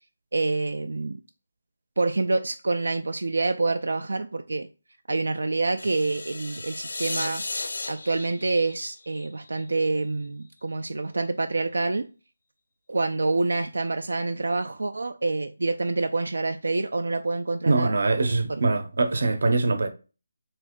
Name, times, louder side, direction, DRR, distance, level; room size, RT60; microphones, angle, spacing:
voice 1, 0.3-1.2 2.0-4.7 5.1-7.4 7.9-12.1 12.9-17.9 18.5-18.6, right 3 dB, 85° right, 0.3 m, -27 dB
sound 1, 5.8-9.9, left 2 dB, 75° left, 0.6 m, -35 dB
voice 2, 17.6-19.9, right 3 dB, 55° right, 0.7 m, -23 dB
3.4 x 3.0 x 3.6 m
hypercardioid pair, 175°, 0 cm